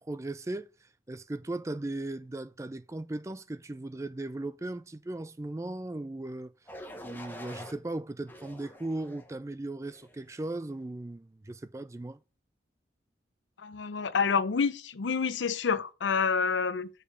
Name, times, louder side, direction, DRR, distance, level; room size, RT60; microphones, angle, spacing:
voice 1, 0.0-6.5 7.0-12.2, right 2 dB, 15° right, 0.3 m, -37 dB
sound 1, 6.7-7.7 8.3-9.3 9.9-10.3, left 1 dB, 10° left, 1.1 m, -46 dB
voice 2, 13.6-16.9, left 5 dB, 75° left, 0.6 m, -28 dB
6.8 x 5.3 x 6.1 m
head